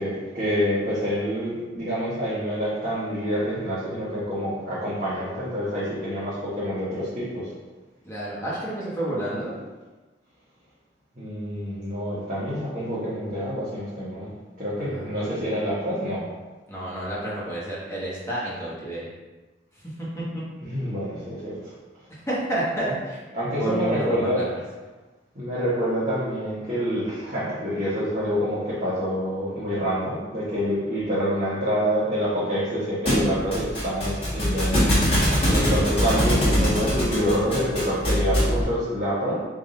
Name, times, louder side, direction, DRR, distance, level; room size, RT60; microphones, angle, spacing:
voice 1, 0.0-7.5 11.2-14.3 14.6-16.2 20.6-21.7 23.3-24.4 25.3-34.9 35.5-39.4, equal, 45° right, -12 dB, 1.1 m, -27 dB
voice 2, 8.0-9.5 14.8-15.4 16.7-19.0 20.0-20.2 22.3-23.2 23.6-24.4 35.4-35.7, right 1 dB, 15° left, -8 dB, 1.1 m, -30 dB
Thump thud, 33.1-38.6, equal, 35° left, 1.2 m, -23 dB
3.6 x 2.6 x 3.8 m, 1.3 s
head